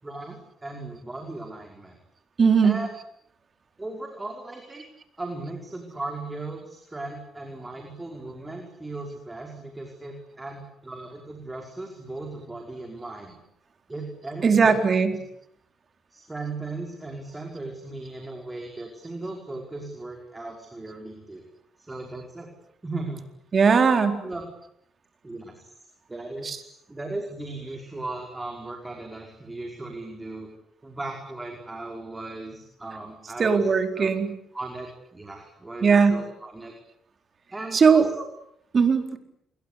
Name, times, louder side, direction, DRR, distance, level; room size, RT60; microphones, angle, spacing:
voice 1, 0.0-2.0 2.6-2.9 3.8-4.8 5.2-13.4 13.9-15.2 16.1-21.5 21.8-22.5 22.8-23.2 24.2-24.4 25.2-25.6 26.1-30.5 30.8-34.1 34.5-36.7 37.5-38.3, right 2 dB, 15° right, 3 dB, 5.3 m, -37 dB
voice 2, 2.4-2.8 14.4-15.1 23.5-24.2 26.4-26.6 33.4-34.3 35.8-36.2 37.7-38.1 38.7-39.2, right 5 dB, 45° right, 7 dB, 4.3 m, -19 dB
28.5 x 22.5 x 8.5 m, 0.73 s
cardioid pair, 90°, 0 cm